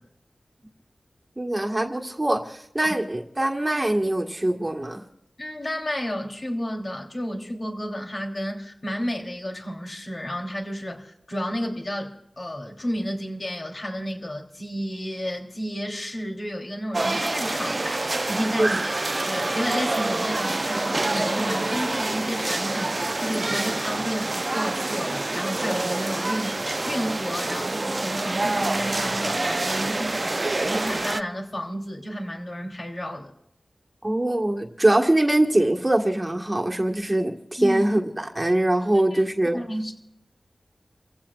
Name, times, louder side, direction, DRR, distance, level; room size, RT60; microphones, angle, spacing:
voice 1, 1.4-5.0 18.6-18.7 23.5-23.6 34.0-39.6, right 1 dB, 25° right, 2 dB, 1.6 m, -23 dB
voice 2, 5.4-30.4 30.6-33.3 37.6-37.8 39.1-39.2 39.5-39.9, equal, 45° left, 1 dB, 3.2 m, -31 dB
sound 1, 16.9-31.2, right 2 dB, 40° right, 0.5 m, -27 dB
29.5 x 16.0 x 2.5 m, 0.79 s
wide cardioid pair, 65°, 0 cm